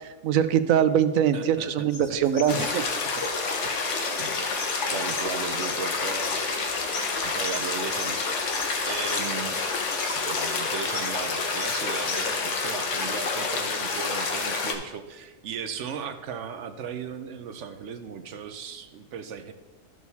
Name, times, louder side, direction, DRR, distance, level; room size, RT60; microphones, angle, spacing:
voice 1, 0.2-2.8, right 9 dB, 90° right, 11 dB, 1.0 m, -22 dB
voice 2, 1.3-2.2 3.2-3.3 3.6-3.7 4.2-4.4 4.9-6.4 7.2-8.3 8.8-9.6 10.0-19.5, right 7 dB, 70° right, 9 dB, 0.9 m, -37 dB
sound 1, 1.9-12.3, left 4 dB, 80° left, 1.4 m, -40 dB
sound 2, 2.5-14.7, left 4 dB, 65° left, 1.2 m, -28 dB
13.5 x 6.2 x 2.8 m, 1.1 s
omnidirectional pair, 1.4 m